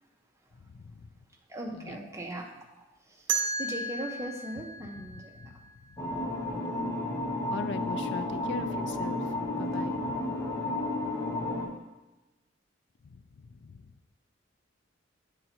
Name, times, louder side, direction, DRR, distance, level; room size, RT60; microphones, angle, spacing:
voice 1, 0.7-1.1 1.7-2.0 5.4-5.5 6.0-6.2 7.5-10.3 13.1-13.9, left 4 dB, 65° left, 11 dB, 0.4 m, -41 dB
voice 2, 1.5-3.3 3.6-5.6 8.3-8.9, right 1 dB, 15° right, 0 dB, 0.9 m, -40 dB
sound 1, 3.3-6.2, right 4 dB, 75° right, 0.7 m, -34 dB
sound 2, 6.0-11.7, left 2 dB, 15° left, 1.2 m, -32 dB
8.4 x 3.9 x 4.4 m, 1.0 s
head